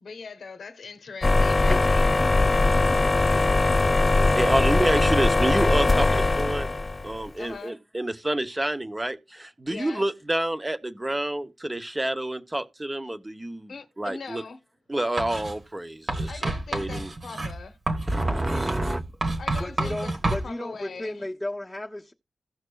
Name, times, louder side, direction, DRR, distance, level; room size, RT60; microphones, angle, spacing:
voice 1, 0.0-2.2 7.4-7.7 9.7-10.0 13.7-14.6 16.3-17.8 19.4-20.1 20.4-21.3, left 4 dB, 85° left, 0.7 m, -41 dB
sound 1, 1.2-7.2, left 2 dB, 35° left, 0.3 m, -21 dB
voice 2, 4.3-6.7 7.0-14.4 14.9-17.1 18.1-19.0, right 1 dB, 20° right, 0.9 m, -28 dB
Writing, 15.2-15.6 16.1-20.5, right 2 dB, 60° right, 1.7 m, -29 dB
voice 3, 19.6-22.1, left 1 dB, 10° left, 0.9 m, -34 dB
16.5 x 6.0 x 2.3 m
wide cardioid pair, 75°, 0 cm